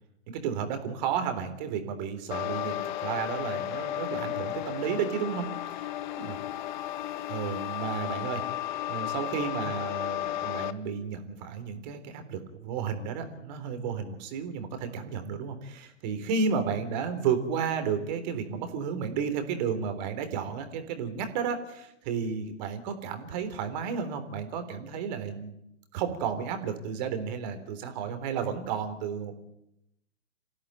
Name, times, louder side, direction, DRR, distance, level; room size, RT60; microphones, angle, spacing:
voice 1, 0.3-5.5 5.8-5.9 6.2-6.4 7.3-8.4 8.9-25.5 25.9-29.4, right 6 dB, 35° right, 8 dB, 3.7 m, -32 dB
sound 1, 2.3-10.7, left 13 dB, 35° left, 1.2 m, -34 dB
27.5 x 16.5 x 9.1 m, 0.82 s
figure-of-eight pair, 120°, 38 cm